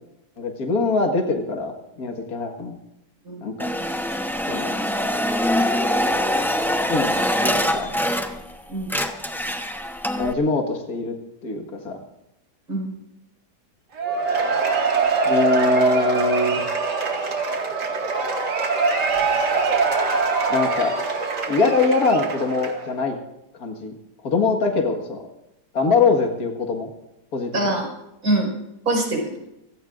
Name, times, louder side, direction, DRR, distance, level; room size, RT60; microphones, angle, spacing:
voice 1, 0.4-2.8 3.4-3.7 4.4-4.7 6.9-7.1 7.4-7.9 10.1-11.2 11.4-12.0 15.3-16.6 20.5-21.0 21.5-23.2 23.6-23.9 24.2-25.2 25.7-26.9 27.3-27.5, left 3 dB, 65° left, 3 dB, 2.2 m, -22 dB
sound 1, 3.6-8.5 8.8-10.3, equal, ahead, 0.6 m, -23 dB
Cheering / Applause / Crowd, 14.0-22.9, right 4 dB, 90° right, 2.7 m, -23 dB
voice 2, 27.5-27.9 28.2-28.5 28.9-29.4, right 2 dB, 65° right, -1 dB, 5.4 m, -23 dB
28.0 x 16.5 x 2.6 m, 0.88 s
omnidirectional pair, 1.7 m